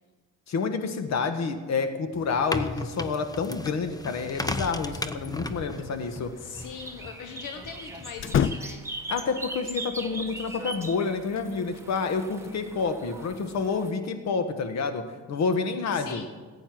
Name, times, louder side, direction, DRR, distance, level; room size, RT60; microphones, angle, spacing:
voice 1, 0.5-6.3 9.1-16.2, left 5 dB, 60° left, 8 dB, 1.5 m, -29 dB
sound 1, 2.1-8.4, left 2 dB, 10° left, 0.8 m, -36 dB
sound 2, 4.8-13.9, right 2 dB, 10° right, 1.4 m, -41 dB
sound 3, 5.2-5.9 6.2-6.3 8.2-9.0 10.6-11.5, left 8 dB, 45° left, 0.6 m, -29 dB
voice 2, 6.4-8.9 15.9-16.3, left 6 dB, 85° left, 6 dB, 1.0 m, -41 dB
15.0 x 9.1 x 6.1 m, 1.4 s
cardioid pair, 90°, 30 cm